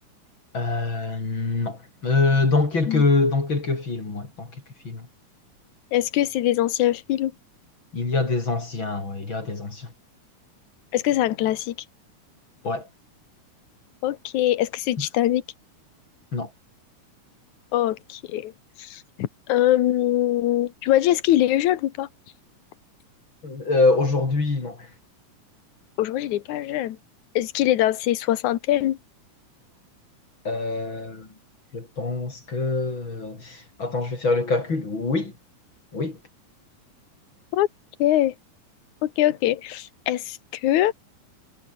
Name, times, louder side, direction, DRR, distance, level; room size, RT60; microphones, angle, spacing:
voice 1, 0.5-4.5 4.8-5.1 7.9-9.9 12.6-12.9 15.0-15.1 16.3-16.5 23.4-24.9 30.4-31.3 31.7-35.3 35.9-36.2, left 3 dB, 35° left, 4.9 m, -24 dB
voice 2, 5.9-7.3 10.9-11.8 14.0-15.4 17.7-18.5 18.8-22.1 26.0-27.0 27.3-29.0 37.5-37.7 38.0-38.3 39.0-40.9, left 13 dB, 70° left, 2.6 m, -23 dB
omnidirectional pair, 3.7 m